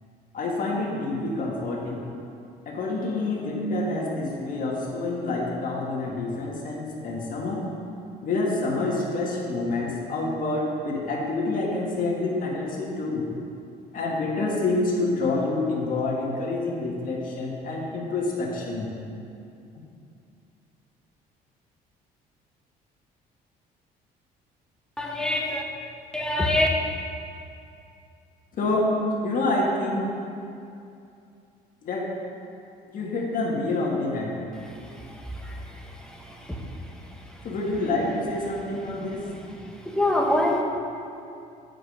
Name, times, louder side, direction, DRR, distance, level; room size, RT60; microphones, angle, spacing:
voice 1, 0.3-2.0 2.7-7.6 8.2-13.3 13.9-18.9 28.5-29.0 29.2-30.1 31.8-32.1 32.9-34.4 37.4-39.3, left 2 dB, 55° left, -2 dB, 1.7 m, -27 dB
voice 2, 25.0-25.6 26.1-26.7 35.4-35.6 36.1-36.2 39.9-40.6, left 1 dB, 5° left, 0 dB, 1.0 m, -24 dB
8.5 x 5.1 x 5.2 m, 2.5 s
cardioid pair, 110°, 17 cm